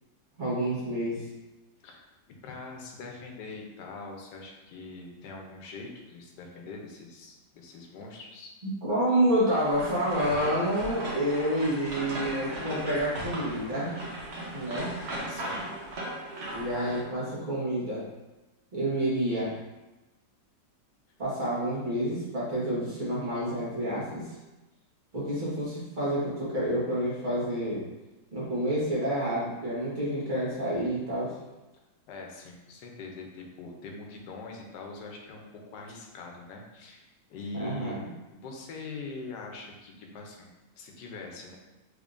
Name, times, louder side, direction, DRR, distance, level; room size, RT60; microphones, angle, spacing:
voice 1, 0.4-1.3 8.6-13.9 14.5-14.9 16.5-18.0 18.7-19.5 21.2-24.3 25.1-27.8 28.3-31.3 37.5-38.1, right 1 dB, 35° right, -8 dB, 1.2 m, -29 dB
voice 2, 2.4-8.5 15.3-15.8 32.1-38.0 38.3-41.6, left 3 dB, 85° left, 1 dB, 1.2 m, -43 dB
sound 1, 9.4-17.0, right 1 dB, 50° right, 0.9 m, -37 dB
3.5 x 3.5 x 2.5 m, 1.1 s
omnidirectional pair, 1.7 m